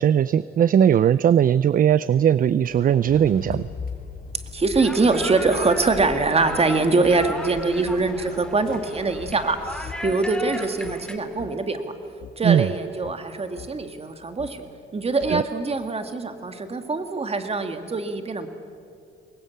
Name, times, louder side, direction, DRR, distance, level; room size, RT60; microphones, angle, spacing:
voice 1, 0.0-3.7 12.4-12.7 15.3-15.4, right 9 dB, 45° right, 18 dB, 0.5 m, -19 dB
sound 1, 2.7-9.9, left 5 dB, 45° left, 3.8 m, -40 dB
voice 2, 4.5-11.9 12.4-14.7 14.9-18.5, right 3 dB, 30° right, 7 dB, 2.1 m, -23 dB
sound 2, 4.7-11.2, left 1 dB, 5° left, 2.5 m, -36 dB
sound 3, 7.0-7.2 7.8-8.0 8.7-8.8 9.2-9.3 10.0-10.2 10.8-11.0 11.4-11.5 12.2-12.3 13.0-13.2 13.6-13.7 14.4-14.5 15.2-15.3, left 10 dB, 80° left, 2.4 m, -41 dB
24.0 x 20.0 x 8.5 m, 2.4 s
cardioid pair, 90°, 20 cm